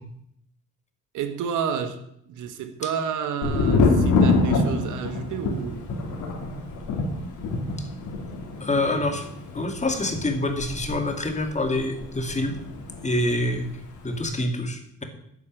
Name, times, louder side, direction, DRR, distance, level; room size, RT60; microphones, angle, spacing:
voice 1, 1.1-2.0 2.3-5.9, right 7 dB, 80° right, 8 dB, 1.6 m, -30 dB
Thunder, 3.4-13.1 13.3-14.0, left 3 dB, 80° left, 3.2 m, -26 dB
voice 2, 8.6-9.3 9.5-12.6 13.0-13.7 14.0-15.0, left 1 dB, 25° left, 5 dB, 2.3 m, -26 dB
10.5 x 8.5 x 7.6 m, 0.73 s
cardioid pair, 90°, 30 cm